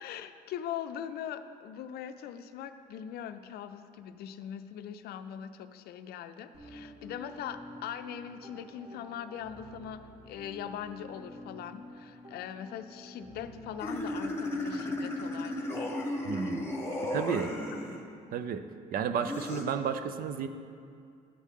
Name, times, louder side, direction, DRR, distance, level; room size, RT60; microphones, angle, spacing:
voice 1, 0.0-15.9, left 9 dB, 70° left, 10 dB, 0.5 m, -41 dB
sound 1, 6.5-14.2, left 1 dB, 40° right, 2.1 m, -49 dB
sound 2, 13.8-18.0 19.2-19.6, left 1 dB, 15° left, 1.3 m, -34 dB
voice 2, 16.2-16.7 17.1-17.5 18.3-20.5, right 7 dB, 60° right, 10 dB, 0.6 m, -32 dB
11.5 x 8.2 x 3.7 m, 2.4 s
cardioid pair, 110°, 17 cm